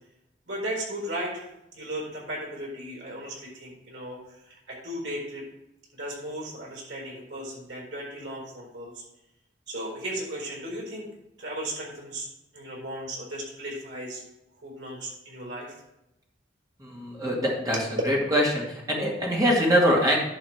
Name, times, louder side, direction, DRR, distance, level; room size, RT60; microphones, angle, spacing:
voice 1, 0.5-1.5 1.7-5.4 6.0-8.9 9.7-11.1 11.4-12.3 12.5-14.2 14.6-15.7, right 1 dB, 85° right, -2 dB, 4.2 m, -36 dB
voice 2, 16.8-17.8 18.1-20.2, equal, 20° right, -3 dB, 2.3 m, -23 dB
11.0 x 3.9 x 7.3 m, 0.87 s
head